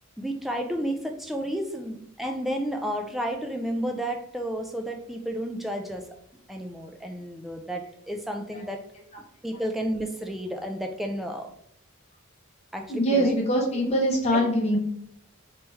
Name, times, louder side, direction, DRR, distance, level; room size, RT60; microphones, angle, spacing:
voice 1, 0.2-6.1 6.5-8.8 9.4-11.5 12.7-13.3 13.7-13.9 14.3-14.4, equal, ahead, 2 dB, 0.3 m, -32 dB
voice 2, 12.9-14.8, equal, 30° left, -2 dB, 1.0 m, -23 dB
3.0 x 3.0 x 3.4 m, 0.73 s
head